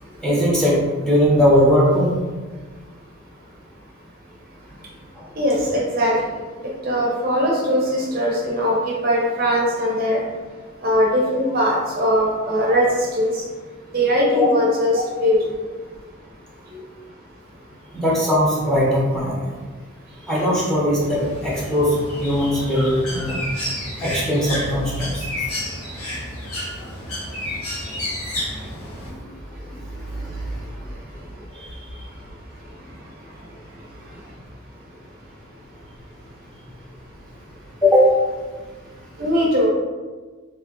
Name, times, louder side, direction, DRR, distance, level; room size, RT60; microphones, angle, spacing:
voice 1, 0.2-2.1 14.4-14.5 18.0-19.4 20.3-21.9 22.2-23.4 24.0-25.2 27.6-27.7 37.8-38.1, equal, 5° left, -6 dB, 1.0 m, -19 dB
voice 2, 5.2-10.2 10.8-13.4 13.9-15.5 16.6-16.8 28.3-28.4 29.8-31.6 32.0-32.2 32.6-34.3 39.2-39.7, equal, 40° right, -3 dB, 0.7 m, -22 dB
Bird, 21.0-29.1, left 1 dB, 80° left, 1.3 m, -31 dB
4.5 x 3.0 x 3.0 m, 1.4 s
head